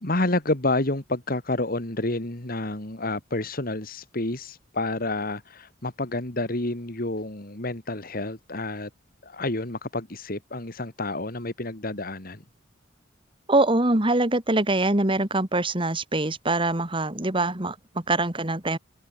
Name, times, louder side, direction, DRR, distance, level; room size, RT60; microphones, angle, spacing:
voice 1, 0.0-8.9 9.2-12.4, left 2 dB, 50° left, 2.5 m, -29 dB
voice 2, 13.5-18.8, right 2 dB, 25° right, 2.2 m, -24 dB
head